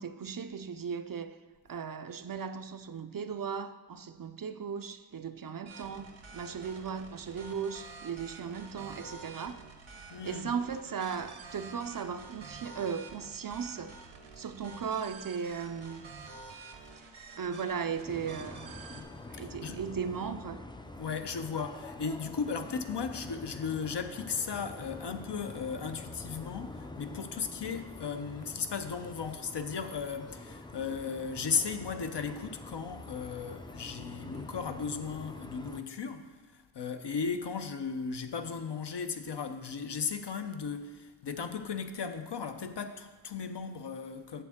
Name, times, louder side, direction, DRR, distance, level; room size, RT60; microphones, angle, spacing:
voice 1, 0.0-1.4 1.7-9.6 10.2-14.0 14.4-16.0 17.4-18.8 19.3-20.6, right 6 dB, 50° right, 0.4 m, -37 dB
sound 1, 5.7-19.0, right 4 dB, 80° right, 1.0 m, -49 dB
voice 2, 10.1-10.5 18.9-19.1 19.3-19.8 21.0-44.4, left 6 dB, 60° left, 0.7 m, -36 dB
sound 2, 18.0-35.8, left 2 dB, 10° left, 0.4 m, -46 dB
8.6 x 7.0 x 3.6 m
wide cardioid pair, 55°, 47 cm